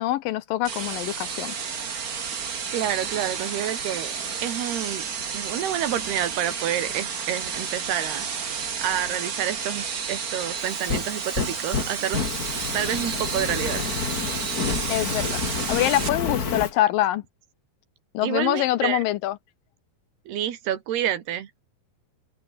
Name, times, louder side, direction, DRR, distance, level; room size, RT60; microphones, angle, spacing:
voice 1, 0.0-1.5 14.9-15.4 15.7-17.2 18.1-19.4, left 14 dB, 80° left, 2.2 m, -24 dB
sound 1, 0.6-16.1, right 6 dB, 75° right, 0.8 m, -31 dB
voice 2, 2.7-4.1 4.4-5.1 5.3-12.2 12.7-13.8 18.2-19.0 20.3-21.5, right 11 dB, 90° right, 4.1 m, -29 dB
Fire, 10.6-16.7, left 5 dB, 30° left, 1.9 m, -29 dB
open air
omnidirectional pair, 4.5 m